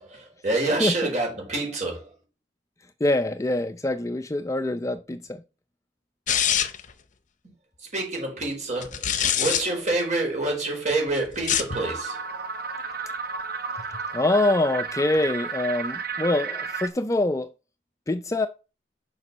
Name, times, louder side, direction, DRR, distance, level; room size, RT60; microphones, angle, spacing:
voice 1, 0.0-2.1 7.9-12.2, right 2 dB, 45° right, 4.6 m, -27 dB
voice 2, 3.0-5.4 14.1-17.5 18.1-18.5, left 2 dB, 20° left, 0.4 m, -24 dB
sound 1, 6.3-6.9 8.8-9.6 11.3-11.8, left 9 dB, 45° left, 0.7 m, -24 dB
sound 2, 11.7-16.9, right 5 dB, 60° right, 1.1 m, -32 dB
7.0 x 5.3 x 6.0 m
head